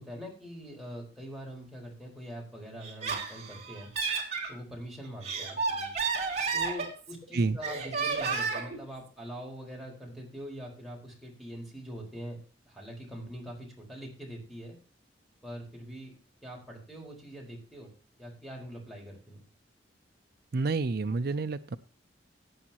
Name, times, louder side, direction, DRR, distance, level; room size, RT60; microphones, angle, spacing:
voice 1, 0.0-3.9 4.5-5.9 6.5-12.4 12.7-14.8 15.4-16.1 16.4-17.9 18.2-19.4, equal, ahead, -3 dB, 4.6 m, -43 dB
Laughter, 2.8-4.5 5.0-7.2 7.6-8.8, right 5 dB, 35° right, 3.2 m, -32 dB
voice 2, 20.5-21.8, right 3 dB, 55° right, 11 dB, 0.5 m, -29 dB
17.5 x 9.5 x 2.9 m, 0.39 s
head